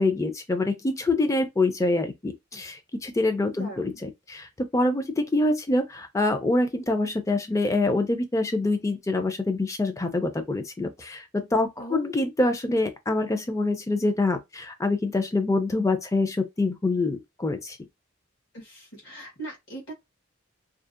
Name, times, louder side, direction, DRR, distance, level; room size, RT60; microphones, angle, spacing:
voice 1, 0.0-17.8, left 2 dB, 15° left, 0.4 m, -25 dB
voice 2, 3.5-4.0 11.8-12.1 18.5-19.9, right 2 dB, 65° left, 1.1 m, -40 dB
2.6 x 2.0 x 2.4 m
head